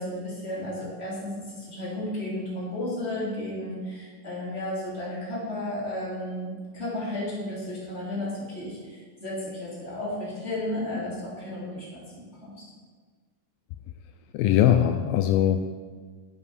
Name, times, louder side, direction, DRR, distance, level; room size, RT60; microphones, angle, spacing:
voice 1, 0.0-12.5, left 1 dB, 20° left, -7 dB, 3.0 m, -33 dB
voice 2, 14.3-15.7, left 10 dB, 85° left, 7 dB, 2.3 m, -21 dB
8.0 x 7.5 x 6.6 m, 1.5 s
omnidirectional pair, 4.2 m